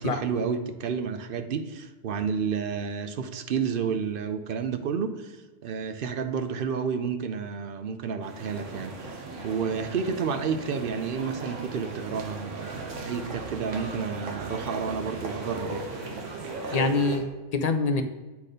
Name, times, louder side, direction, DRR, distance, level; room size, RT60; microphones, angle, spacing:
voice 1, 0.0-15.9, right 6 dB, 55° right, 9 dB, 0.7 m, -31 dB
sound 1, 8.2-17.2, right 3 dB, 80° right, 1.4 m, -37 dB
voice 2, 16.7-18.0, left 3 dB, 50° left, 8 dB, 0.5 m, -25 dB
8.3 x 4.2 x 5.0 m, 1.2 s
omnidirectional pair, 1.3 m